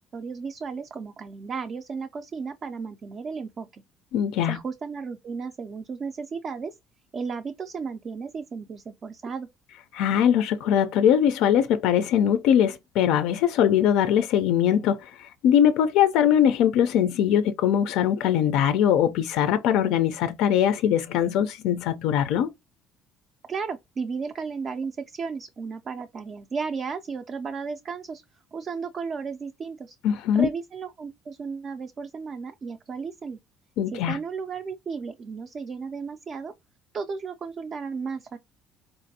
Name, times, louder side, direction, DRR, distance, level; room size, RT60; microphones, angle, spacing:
voice 1, 0.1-3.8 4.5-6.8 7.1-9.5 23.5-28.2 28.5-30.0 30.3-33.4 33.9-36.5 36.9-38.4, right 5 dB, 30° right, 0.3 m, -34 dB
voice 2, 4.1-4.6 9.9-22.5 30.0-30.5 33.8-34.2, left 9 dB, 70° left, 0.4 m, -21 dB
4.5 x 2.5 x 2.6 m
cardioid pair, 175°, 0 cm